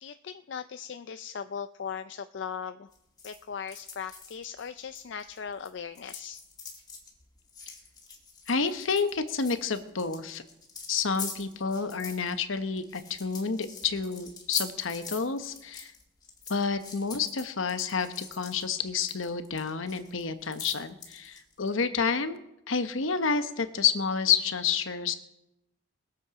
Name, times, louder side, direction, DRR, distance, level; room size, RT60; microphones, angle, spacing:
voice 1, 0.0-2.9 3.2-6.4, left 7 dB, 65° left, 10 dB, 0.4 m, -38 dB
sound 1, 2.9-5.7 5.9-21.7, left 5 dB, 20° left, 1.8 m, -44 dB
voice 2, 8.5-10.4 10.9-15.9 16.5-22.4 22.7-25.1, left 5 dB, 80° left, 10 dB, 1.0 m, -29 dB
21.0 x 7.4 x 4.9 m, 0.87 s
head